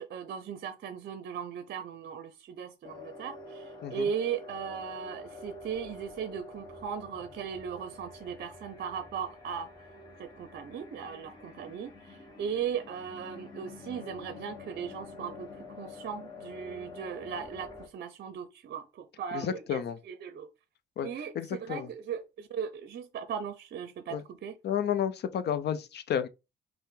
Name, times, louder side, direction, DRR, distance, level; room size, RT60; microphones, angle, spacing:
voice 1, 0.0-9.7 10.2-20.5 21.0-24.6, right 7 dB, 55° right, 0.6 m, -38 dB
sound 1, 2.8-17.9, left 3 dB, 20° left, 1.2 m, -47 dB
voice 2, 19.3-20.0 21.0-21.1 21.3-21.9 24.1-24.2 24.6-26.3, left 9 dB, 55° left, 0.6 m, -31 dB
5.4 x 2.1 x 3.6 m
cardioid pair, 90°, 20 cm